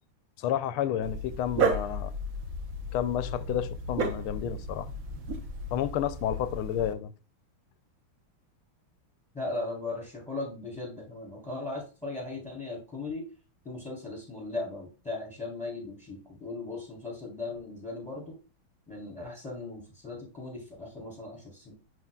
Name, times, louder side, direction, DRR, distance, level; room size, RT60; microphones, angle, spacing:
voice 1, 0.4-2.1 2.9-4.9 5.7-7.1, left 10 dB, 85° left, 1.5 m, -30 dB
Dog, 1.0-6.9, right 2 dB, 55° right, 1.1 m, -33 dB
voice 2, 9.3-13.3 13.6-18.3 18.9-21.7, left 2 dB, 5° left, 3.3 m, -38 dB
10.5 x 3.9 x 2.3 m
omnidirectional pair, 2.3 m